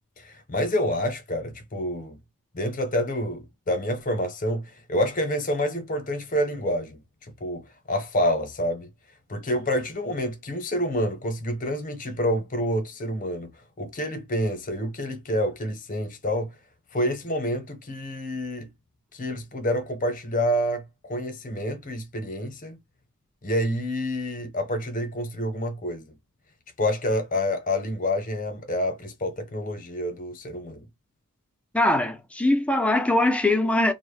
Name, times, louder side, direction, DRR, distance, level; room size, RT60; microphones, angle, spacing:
voice 1, 0.2-2.2 2.5-7.0 7.4-7.6 7.9-8.9 9.3-13.5 13.8-16.5 16.9-18.7 19.1-22.8 23.4-26.1 26.8-30.9, equal, 35° left, 0.7 m, -28 dB
voice 2, 31.7-33.9, left 1 dB, 5° left, 0.3 m, -22 dB
2.1 x 2.0 x 3.0 m
head